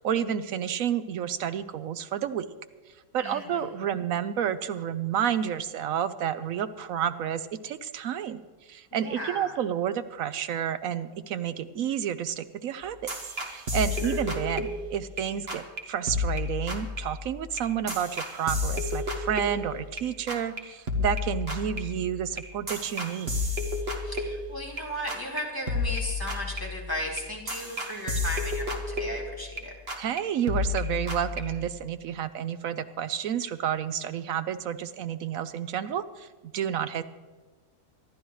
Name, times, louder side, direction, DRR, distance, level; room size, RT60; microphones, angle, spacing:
voice 1, 0.0-2.5 3.1-13.1 13.5-23.4 30.0-36.3 36.5-37.0, right 9 dB, 70° right, 13 dB, 0.9 m, -30 dB
voice 2, 3.2-3.9 8.9-9.6 13.9-14.4 24.0-29.7, equal, 15° left, -3 dB, 2.7 m, -36 dB
sound 1, 12.8-15.2 15.5-15.8 16.1-20.0 20.3-20.6 20.9-24.8 25.1-25.4 25.7-29.6 29.9-30.2 30.5-31.7, left 3 dB, 40° right, 1.6 m, -31 dB
25.0 x 11.5 x 3.2 m, 1.3 s
omnidirectional pair, 1.6 m